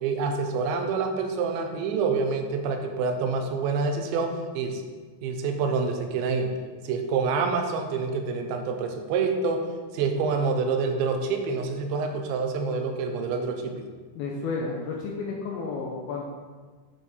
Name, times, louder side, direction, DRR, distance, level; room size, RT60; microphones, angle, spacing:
voice 1, 0.0-4.8 5.2-6.5 6.8-9.6 9.9-13.9, right 4 dB, 90° right, 5 dB, 3.0 m, -27 dB
voice 2, 14.2-16.3, left 4 dB, 80° left, -2 dB, 2.3 m, -32 dB
9.7 x 4.4 x 4.0 m, 1.4 s
omnidirectional pair, 5.1 m